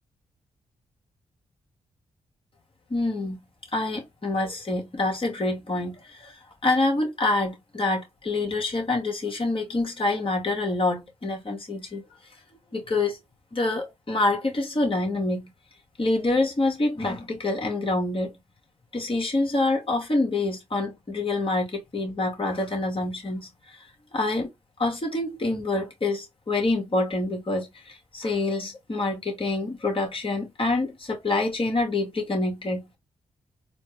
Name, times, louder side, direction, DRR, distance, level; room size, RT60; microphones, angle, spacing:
voice 1, 2.9-3.4 3.7-12.0 12.7-13.2 13.5-15.5 16.0-18.4 18.9-23.8 24.1-24.5 24.8-33.0, left 2 dB, 40° left, 2.0 m, -26 dB
4.1 x 2.4 x 3.3 m
supercardioid pair, 40°, 15 cm